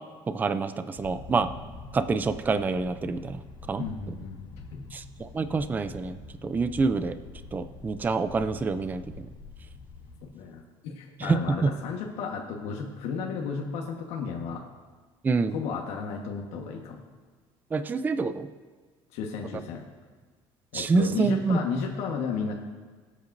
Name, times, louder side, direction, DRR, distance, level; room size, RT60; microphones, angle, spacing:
voice 1, 0.3-1.5 1.9-3.4 3.7-3.8 4.9-6.2 6.4-7.1 7.5-9.0 11.2-11.7 15.2-15.5 17.7-18.5 20.7-21.6, right 4 dB, 15° right, 11 dB, 0.4 m, -26 dB
sound 1, 0.9-10.2, left 3 dB, 45° left, 3.3 m, -45 dB
voice 2, 3.8-4.4 4.7-4.9 10.2-14.6 15.5-17.0 19.1-19.8 20.7-22.6, left 5 dB, 70° left, 0 dB, 1.3 m, -33 dB
23.0 x 8.3 x 2.6 m, 1.4 s
cardioid pair, 150°, 11 cm